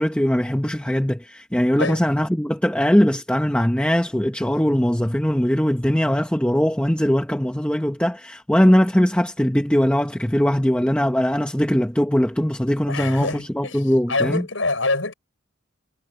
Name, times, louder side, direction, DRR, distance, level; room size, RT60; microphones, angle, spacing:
voice 1, 0.0-14.5, equal, 5° left, 0.9 m, -20 dB
voice 2, 12.9-13.8 14.1-15.1, left 3 dB, 75° left, 6.5 m, -25 dB
head